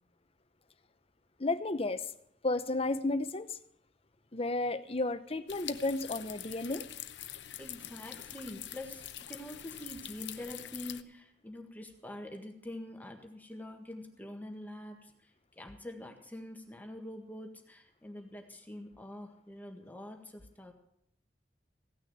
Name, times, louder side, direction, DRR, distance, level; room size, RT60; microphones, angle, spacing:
voice 1, 1.4-2.1 2.4-3.6 4.3-6.8, left 2 dB, 35° left, 12 dB, 0.8 m, -32 dB
sound 1, 5.5-11.0, left 12 dB, 85° left, 0.8 m, -45 dB
voice 2, 7.6-15.1 15.6-20.7, left 1 dB, 10° left, 3 dB, 1.7 m, -45 dB
16.5 x 6.4 x 9.3 m, 0.73 s
head